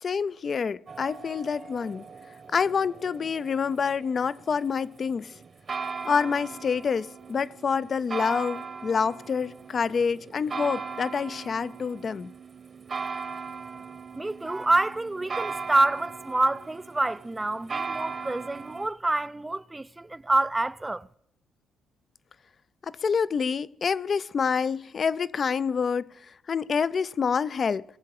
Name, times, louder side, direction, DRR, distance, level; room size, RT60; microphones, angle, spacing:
voice 1, 0.0-2.0 2.5-5.3 6.0-12.3 22.8-26.0 26.5-27.8, left 6 dB, 45° left, 0.5 m, -27 dB
sound 1, 0.9-18.9, right 5 dB, 40° right, 1.1 m, -39 dB
voice 2, 14.1-21.1, right 2 dB, 15° right, 0.4 m, -27 dB
21.0 x 7.6 x 4.8 m
cardioid pair, 90°, 0 cm